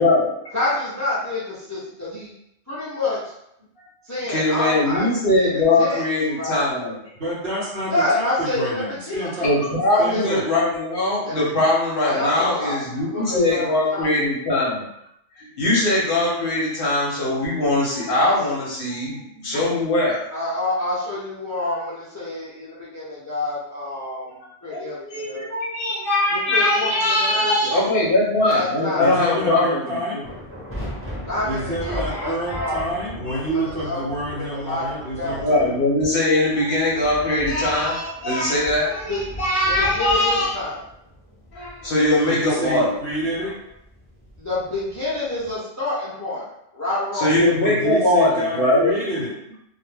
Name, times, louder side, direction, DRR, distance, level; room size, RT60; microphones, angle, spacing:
voice 1, 0.0-0.3 3.8-3.9 4.3-7.0 9.4-14.9 15.3-20.2 21.7-21.8 24.7-29.8 30.1-30.2 31.8-32.8 35.4-40.5 41.5-42.9 47.1-48.9, left 2 dB, 55° left, -4 dB, 0.8 m, -21 dB
voice 2, 0.5-2.3 2.7-3.3 4.0-5.1 5.4-5.5 5.8-6.0 6.4-6.6 7.9-9.3 9.9-10.2 11.3-11.4 12.0-14.1 18.2-18.3 20.3-25.0 25.3-25.5 26.3-27.5 28.5-29.2 31.3-32.9 33.6-34.0 34.5-35.4 39.1-39.2 39.7-40.8 44.4-47.3, left 2 dB, 25° left, -9 dB, 0.3 m, -27 dB
voice 3, 7.2-9.5 10.0-10.5 29.0-30.2 31.4-35.7 42.3-43.5 47.3-49.4, right 1 dB, 60° right, -4 dB, 0.9 m, -28 dB
sound 1, 30.2-45.6, equal, 15° right, 0.6 m, -38 dB
2.2 x 2.1 x 3.2 m, 0.78 s
omnidirectional pair, 1.3 m